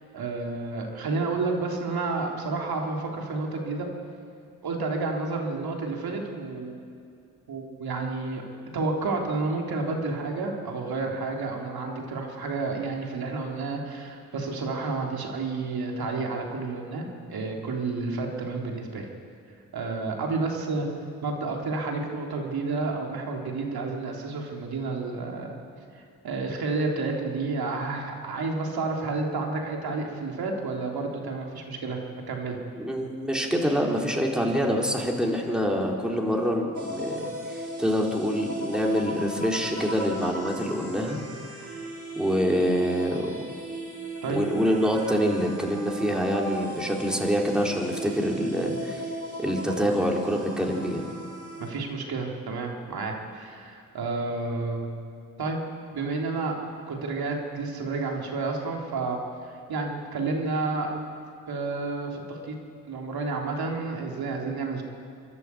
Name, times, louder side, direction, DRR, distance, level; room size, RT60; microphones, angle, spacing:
voice 1, 0.1-3.9 4.6-6.8 7.5-8.4 8.7-19.1 19.7-20.9 21.2-25.6 26.2-32.0 32.3-32.6 44.2-44.6 51.6-55.0 55.4-55.6 55.9-56.6 56.9-59.2 59.5-60.9 61.5-62.6 62.9-64.8, right 3 dB, 65° right, 1 dB, 3.5 m, -30 dB
voice 2, 32.8-41.2 42.2-43.3 44.3-49.0 49.4-51.0, equal, ahead, -1 dB, 4.0 m, -26 dB
sound 1, 36.7-51.7, right 1 dB, 50° right, 4.9 m, -37 dB
26.5 x 11.5 x 8.5 m, 2.4 s
supercardioid pair, 45°, 39 cm